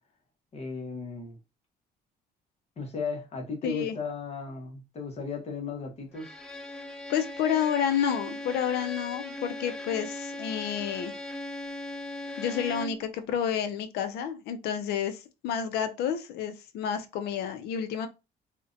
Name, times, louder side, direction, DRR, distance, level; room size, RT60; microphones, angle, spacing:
voice 1, 0.5-1.4 2.8-6.3, left 4 dB, 40° left, 0.8 m, -36 dB
voice 2, 3.6-4.0 7.1-11.1 12.4-18.1, left 8 dB, 75° left, 0.4 m, -30 dB
Bowed string instrument, 6.1-13.1, left 1 dB, 5° left, 0.3 m, -39 dB
2.5 x 2.1 x 2.4 m
cardioid pair, 110°, 17 cm